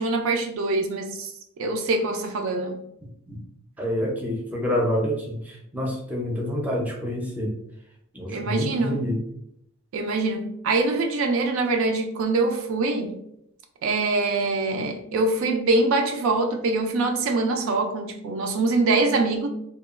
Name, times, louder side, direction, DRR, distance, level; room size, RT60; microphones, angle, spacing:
voice 1, 0.0-1.3 1.6-2.8 8.3-9.0 9.9-13.2 13.8-19.5, right 3 dB, 60° right, 4 dB, 0.3 m, -24 dB
voice 2, 3.8-7.5 8.1-9.2, left 1 dB, 5° right, -2 dB, 0.5 m, -27 dB
2.9 x 2.2 x 2.4 m, 0.76 s
head